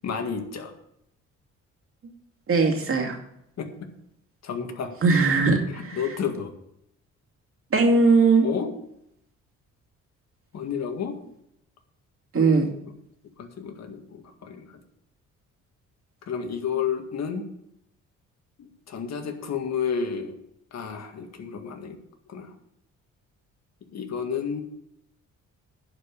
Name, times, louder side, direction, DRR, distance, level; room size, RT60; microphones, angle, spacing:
voice 1, 0.0-0.7 3.6-3.7 4.4-4.9 5.9-6.5 8.4-8.7 10.5-11.1 12.3-12.4 13.4-14.7 16.3-17.4 18.6-20.4 20.7-22.0 22.3-22.5 23.9-24.6, left 7 dB, 60° left, 4 dB, 2.0 m, -31 dB
voice 2, 2.5-3.2 5.0-5.6 5.9-6.1 7.7-8.5 12.3-12.7, right 4 dB, 45° right, 1 dB, 2.4 m, -19 dB
11.0 x 5.4 x 8.3 m, 0.78 s
cardioid pair, 90°, 30 cm